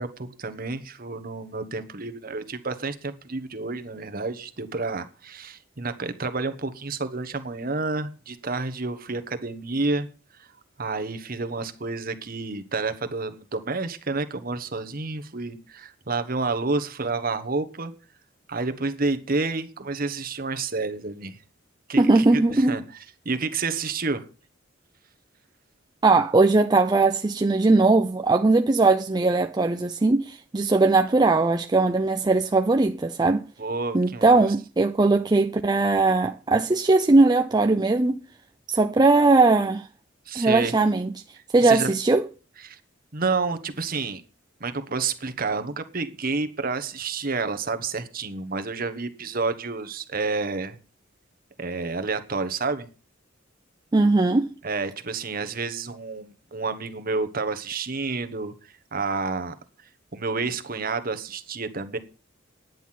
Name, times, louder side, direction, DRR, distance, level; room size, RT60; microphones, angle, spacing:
voice 1, 0.0-10.1 10.4-10.5 10.8-17.9 18.5-21.4 21.9-24.3 33.6-34.5 40.3-40.7 41.6-41.9 42.6-42.8 43.1-44.2 44.6-50.8 51.6-52.9 54.6-59.5 60.1-62.0, right 3 dB, 45° right, 1.2 m, -29 dB
voice 2, 22.0-22.8 26.0-33.4 33.9-38.2 38.7-39.9 40.3-41.1 41.5-42.3 53.9-54.5, right 3 dB, 20° right, 0.5 m, -19 dB
10.5 x 9.3 x 5.9 m
head